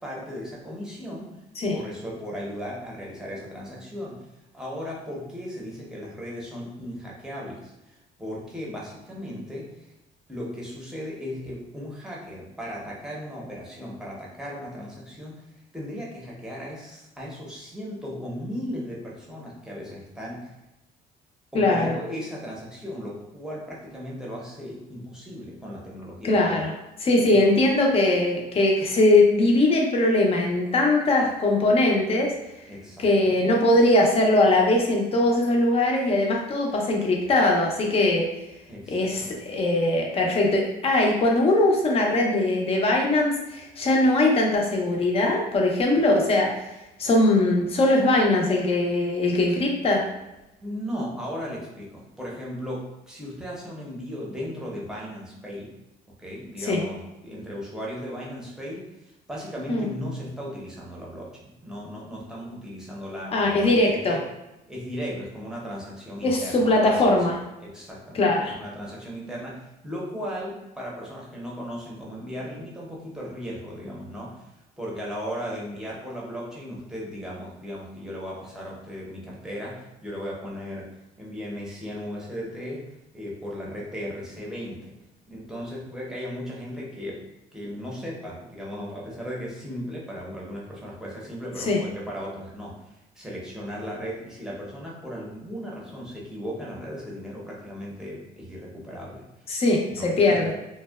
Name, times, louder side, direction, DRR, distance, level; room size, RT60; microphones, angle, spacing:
voice 1, 0.0-1.3 1.7-4.2 4.5-7.7 8.2-9.7 10.3-15.4 15.7-20.5 21.5-26.7 27.3-27.6 32.7-33.4 38.7-39.3 49.5-49.6 50.6-55.7 56.2-58.9 59.3-64.2 64.7-67.3 67.6-74.4 74.8-80.9 81.2-82.9 83.1-84.9 85.3-87.2 87.5-99.2 99.9-100.5, equal, 5° right, -5 dB, 0.7 m, -36 dB
voice 2, 21.5-22.0 26.2-26.7 27.0-32.3 33.0-38.3 38.9-46.5 47.0-50.0 56.6-56.8 59.7-59.9 63.3-64.2 66.2-67.4 68.1-68.6 91.6-91.8 99.5-100.5, left 2 dB, 35° left, 0 dB, 0.5 m, -21 dB
2.6 x 2.1 x 2.3 m, 0.95 s
cardioid pair, 110°, 17 cm